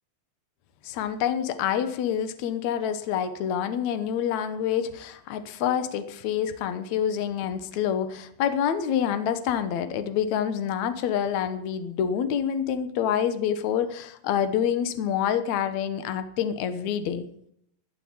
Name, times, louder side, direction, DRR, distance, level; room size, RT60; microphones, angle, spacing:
voice 1, 0.8-17.2, left 9 dB, 85° left, 1.6 m, -27 dB
14.0 x 9.8 x 8.7 m
omnidirectional pair, 5.0 m